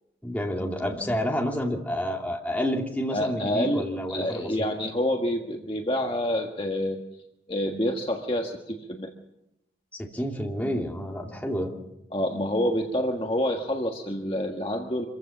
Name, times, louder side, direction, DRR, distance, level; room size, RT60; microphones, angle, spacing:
voice 1, 0.2-4.7 9.9-11.7, equal, 10° left, 0 dB, 2.5 m, -29 dB
voice 2, 3.1-7.0 7.5-9.1 12.1-15.1, left 1 dB, 30° left, 2 dB, 1.5 m, -27 dB
25.5 x 15.5 x 7.3 m, 0.88 s
head